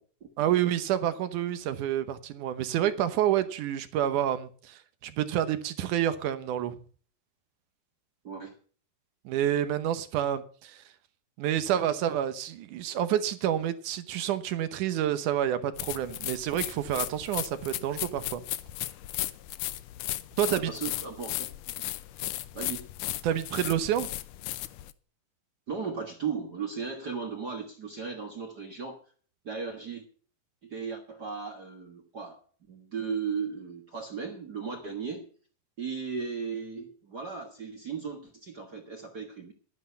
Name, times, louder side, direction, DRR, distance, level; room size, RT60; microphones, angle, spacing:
voice 1, 0.4-6.8 9.3-10.8 11.4-18.4 20.4-20.7 23.2-24.1, right 11 dB, 70° right, 2.3 m, -28 dB
voice 2, 8.2-8.6 20.5-21.5 22.1-22.2 22.5-22.9 25.7-29.0 29.4-30.0 30.6-35.3 35.8-39.5, right 5 dB, 45° right, 1.3 m, -36 dB
sound 1, 15.8-24.9, left 15 dB, 75° left, 2.1 m, -36 dB
12.0 x 9.9 x 5.6 m
omnidirectional pair, 4.0 m